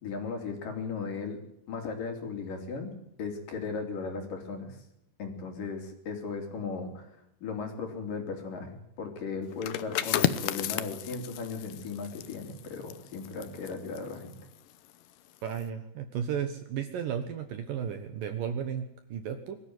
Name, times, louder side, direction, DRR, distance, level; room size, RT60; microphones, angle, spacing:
voice 1, 0.0-1.4 1.7-4.8 5.2-7.1 7.4-14.3, left 4 dB, 55° left, 4 dB, 4.4 m, -36 dB
sound 1, 9.5-15.0 15.4-15.6, left 12 dB, 75° left, 1.9 m, -34 dB
voice 2, 15.4-19.6, right 8 dB, 65° right, 8 dB, 2.5 m, -34 dB
22.5 x 14.0 x 9.6 m, 0.80 s
omnidirectional pair, 5.0 m